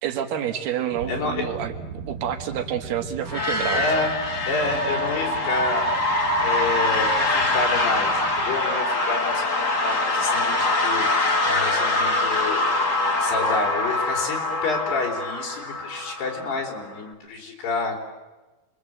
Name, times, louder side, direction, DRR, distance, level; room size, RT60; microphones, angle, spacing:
voice 1, 0.0-1.7 2.1-3.8, right 9 dB, 80° right, 6 dB, 3.5 m, -28 dB
sound 1, 0.9-8.6, right 5 dB, 60° right, 3.5 m, -39 dB
voice 2, 1.1-1.5 3.7-4.1 4.5-5.9 6.4-11.1 11.4-12.7 13.2-18.0, left 4 dB, 85° left, 0 dB, 6.0 m, -29 dB
sound 2, 3.3-17.0, left 2 dB, 40° left, 1.1 m, -24 dB
27.5 x 22.5 x 7.8 m, 1.1 s
omnidirectional pair, 4.5 m